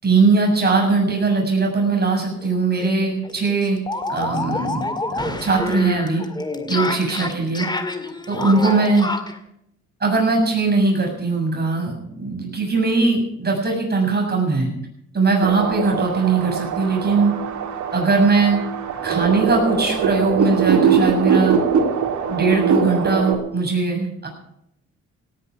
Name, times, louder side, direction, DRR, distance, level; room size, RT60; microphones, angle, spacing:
voice 1, 0.0-3.8 4.1-6.2 6.7-7.7 8.3-9.1 10.0-14.7 15.1-17.3 17.9-18.6 19.0-21.6 22.3-24.3, right 3 dB, 35° right, 1 dB, 7.2 m, -20 dB
sound 1, 2.4-2.5 2.8-2.9 3.2-9.4, left 2 dB, 15° left, 2.1 m, -27 dB
sound 2, 15.4-23.3, right 6 dB, 70° right, 3.4 m, -22 dB
17.5 x 10.5 x 7.2 m, 0.76 s
cardioid pair, 90°, 30 cm